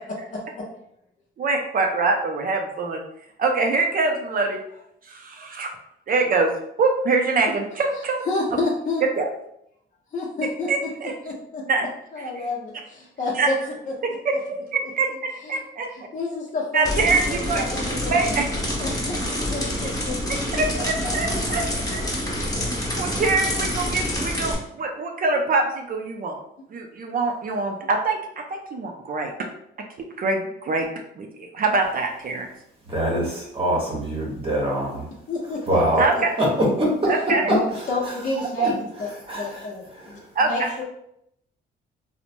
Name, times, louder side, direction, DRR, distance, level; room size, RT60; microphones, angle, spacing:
voice 1, 0.3-0.6 7.4-7.5 8.3-9.0 10.1-10.7 11.2-11.6 12.1-13.5 15.4-15.6 15.9-18.4 18.8-20.1 20.8-20.9 21.5-21.6 22.4-22.5 35.3-35.6 35.9-36.7 37.4-38.7 39.0-40.8, left 3 dB, 40° left, -3 dB, 0.6 m, -30 dB
voice 2, 1.4-3.0 3.4-4.6 5.1-5.7 6.1-6.5 6.8-8.2 9.0-9.3 10.7-11.1 11.7-11.9 13.3-13.5 14.3-14.4 14.7-15.1 15.5-15.9 16.7-17.6 18.1-18.4 20.5-21.6 21.9-22.0 23.0-26.4 26.7-29.3 29.8-29.9 30.2-30.9 31.2-32.5 36.0-36.3 37.1-37.4 38.6-38.7 40.4-40.7, right 3 dB, 45° right, 3 dB, 0.5 m, -24 dB
sound 1, 16.8-24.5, left 1 dB, 15° left, 1.1 m, -27 dB
voice 3, 32.9-35.0 35.7-36.1 36.4-36.5 36.8-36.9 37.5-37.6 39.3-39.6 39.9-40.1, right 1 dB, 30° right, -3 dB, 0.9 m, -24 dB
3.0 x 2.1 x 2.5 m, 0.74 s
cardioid pair, 90°, 20 cm